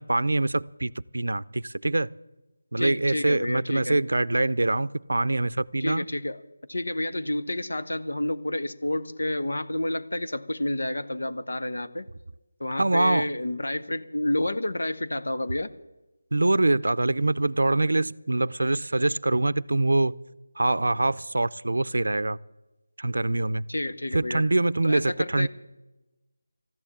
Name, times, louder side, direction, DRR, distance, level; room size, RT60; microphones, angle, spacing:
voice 1, 0.0-2.1 2.7-6.1 12.7-13.3 16.3-20.1 20.6-22.4 23.0-23.7 24.1-25.5, right 2 dB, 80° right, 19 dB, 0.5 m, -24 dB
voice 2, 2.8-4.0 5.8-6.4 6.7-12.1 12.6-15.7 23.7-24.4 24.8-25.5, left 1 dB, 80° left, 10 dB, 1.1 m, -29 dB
14.0 x 10.5 x 8.5 m, 1.1 s
figure-of-eight pair, 170°, 0 cm